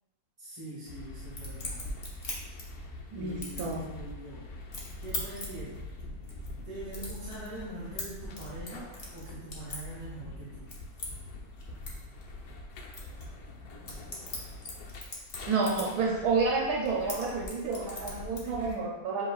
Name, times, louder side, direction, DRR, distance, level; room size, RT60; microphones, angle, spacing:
voice 1, 0.4-1.8 3.1-4.5 5.0-5.8 6.6-10.7, right 1 dB, 20° right, -11 dB, 1.3 m, -43 dB
sound 1, 0.9-18.7, left 2 dB, 85° left, 1.2 m, -45 dB
sound 2, 1.2-3.1 3.4-4.0 4.5-10.2 10.5-16.3 16.6-18.8, left 2 dB, 45° left, 1.0 m, -42 dB
voice 2, 3.1-3.9 15.5-19.3, right 4 dB, 80° right, -2 dB, 1.2 m, -30 dB
7.6 x 2.8 x 2.4 m, 1.1 s
omnidirectional pair, 1.6 m